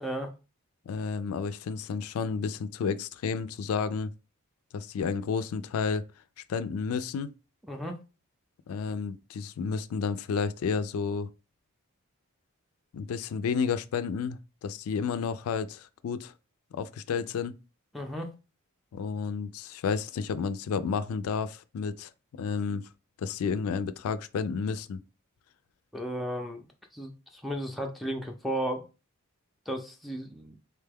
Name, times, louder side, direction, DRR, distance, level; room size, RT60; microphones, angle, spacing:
voice 1, 0.0-0.3 7.7-8.0 17.9-18.3 25.9-26.7 26.9-28.8 29.7-30.6, equal, ahead, 0.4 m, -34 dB
voice 2, 0.9-4.1 4.7-6.1 6.5-7.3 8.7-11.3 12.9-16.3 16.7-17.6 18.9-22.9 23.2-25.0, left 5 dB, 70° left, 0.3 m, -31 dB
3.6 x 2.2 x 3.3 m
head